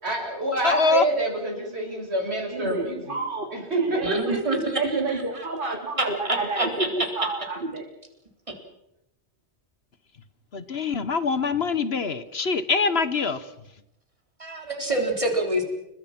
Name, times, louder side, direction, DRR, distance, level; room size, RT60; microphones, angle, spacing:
voice 1, 0.0-3.2 3.5-4.4, right 2 dB, 60° right, 2 dB, 7.1 m, -27 dB
voice 2, 0.6-1.0 10.5-13.4, left 4 dB, 60° left, 13 dB, 1.4 m, -24 dB
voice 3, 2.5-3.5 3.8-4.1 4.8-7.9, right 3 dB, 45° right, 2 dB, 3.0 m, -29 dB
voice 4, 4.0-6.9 14.4-15.6, right 1 dB, 25° right, 3 dB, 4.0 m, -27 dB
30.0 x 22.0 x 6.0 m, 0.86 s
omnidirectional pair, 1.2 m